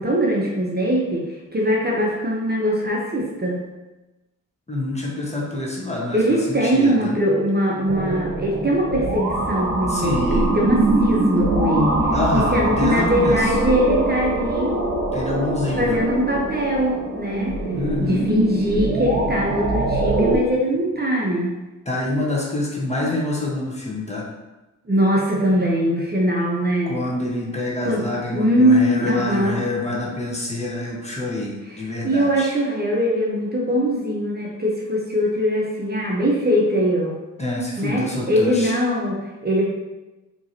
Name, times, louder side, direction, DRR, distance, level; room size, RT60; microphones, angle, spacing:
voice 1, 0.0-3.6 6.1-14.8 15.8-17.5 18.0-21.5 24.9-27.0 27.8-28.0 28.3-29.6 31.6-37.2 37.8-39.6, equal, 30° right, -2 dB, 0.9 m, -21 dB
voice 2, 4.7-6.2 6.5-7.1 9.9-10.5 12.1-13.4 15.1-16.0 17.7-18.3 21.9-24.2 26.9-32.5 37.4-38.7, left 2 dB, 20° left, -4 dB, 1.2 m, -26 dB
sound 1, 7.9-20.4, right 2 dB, 60° right, 0.9 m, -23 dB
4.5 x 3.0 x 2.8 m, 1.1 s
cardioid pair, 60°, 34 cm